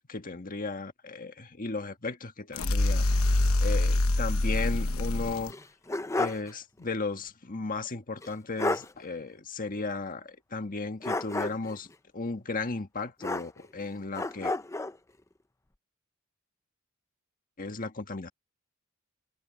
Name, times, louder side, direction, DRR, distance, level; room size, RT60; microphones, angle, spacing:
voice 1, 0.0-3.1 3.6-5.5 6.1-11.9 12.1-14.5 17.6-18.3, left 3 dB, 40° left, 1.6 m, -35 dB
sound 1, 2.5-5.5, left 2 dB, 75° left, 1.1 m, -25 dB
sound 2, 5.5-6.5 6.8-6.9 8.2-8.3 8.6-8.9 11.0-11.8 13.2-13.8 14.1-15.0, left 2 dB, 15° left, 0.6 m, -31 dB
head